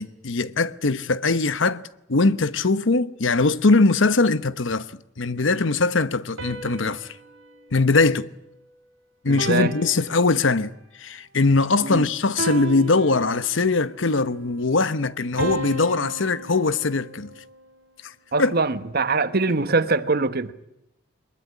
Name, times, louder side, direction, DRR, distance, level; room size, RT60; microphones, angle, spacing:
voice 1, 0.0-1.8 2.1-7.1 7.7-8.3 9.2-10.7 11.0-17.3 18.0-18.1 18.4-18.5, left 3 dB, 65° left, 1.0 m, -21 dB
sound 1, 6.4-8.8 9.4-10.8 12.4-13.8 15.4-17.7, right 3 dB, 75° right, 2.6 m, -35 dB
voice 2, 9.3-9.7 11.8-12.1 18.3-20.5, right 3 dB, 50° right, 1.2 m, -23 dB
23.0 x 21.0 x 9.9 m
head